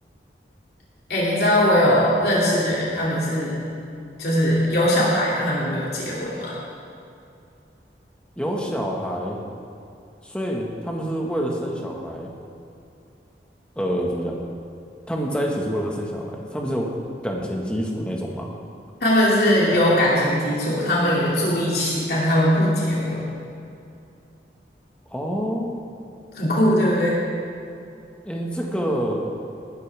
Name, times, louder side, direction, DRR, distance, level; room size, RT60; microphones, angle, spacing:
voice 1, 1.1-3.6 4.2-6.5 19.0-23.2 26.3-27.2, equal, 60° left, -6 dB, 2.7 m, -20 dB
voice 2, 8.4-9.4 10.2-12.3 13.7-14.4 15.1-16.9 17.2-18.5 19.7-19.8 25.1-25.8 28.2-29.3, equal, 5° left, -2 dB, 1.6 m, -27 dB
19.5 x 12.5 x 3.5 m, 2.6 s
head